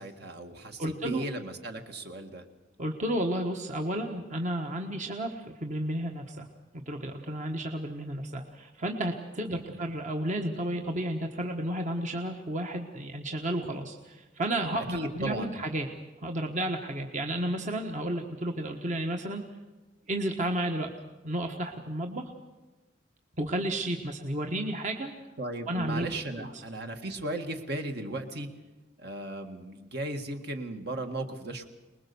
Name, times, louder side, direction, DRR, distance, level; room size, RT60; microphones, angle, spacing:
voice 1, 0.0-2.5 9.7-9.9 14.8-15.6 25.4-28.5 29.0-31.7, right 1 dB, 60° right, 5 dB, 1.9 m, -36 dB
voice 2, 0.8-1.2 2.8-6.5 6.9-15.9 16.2-19.4 20.1-20.9 21.2-22.2 23.4-25.1 25.7-26.1 26.4-26.5, right 1 dB, 45° right, 3 dB, 1.4 m, -32 dB
24.5 x 20.5 x 7.0 m, 1.2 s
head